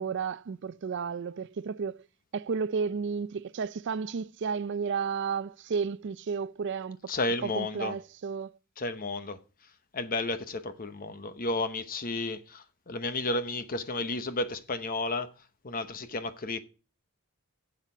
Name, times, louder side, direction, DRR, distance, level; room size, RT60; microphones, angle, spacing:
voice 1, 0.0-2.0 2.3-7.1 7.4-8.6, right 5 dB, 55° right, 0.4 m, -32 dB
voice 2, 7.1-7.9 8.8-9.4 9.9-15.3 15.6-16.6, left 2 dB, 40° left, 0.9 m, -32 dB
10.0 x 7.4 x 6.0 m
head